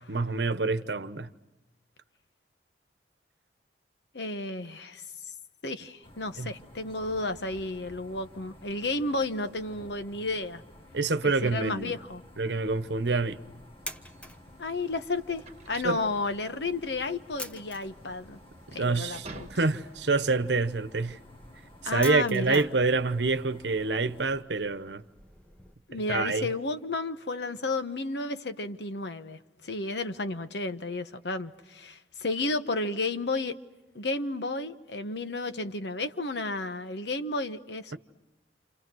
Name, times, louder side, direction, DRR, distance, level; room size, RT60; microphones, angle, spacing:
voice 1, 0.1-1.3 6.4-6.5 10.9-11.9 12.4-13.4 15.8-16.0 18.7-21.2 21.8-25.0 25.9-26.5, right 3 dB, 75° right, 1.0 m, -27 dB
voice 2, 4.1-5.0 5.6-10.6 11.2-12.2 14.6-18.4 18.7-19.5 21.8-22.7 25.9-33.5 33.9-38.0, left 2 dB, 70° left, 1.2 m, -32 dB
sound 1, 6.0-24.4, left 1 dB, 30° left, 1.5 m, -53 dB
sound 2, 12.7-25.7, equal, 10° left, 1.1 m, -49 dB
sound 3, 14.1-20.0, right 3 dB, 40° right, 1.4 m, -49 dB
29.0 x 28.5 x 6.3 m
head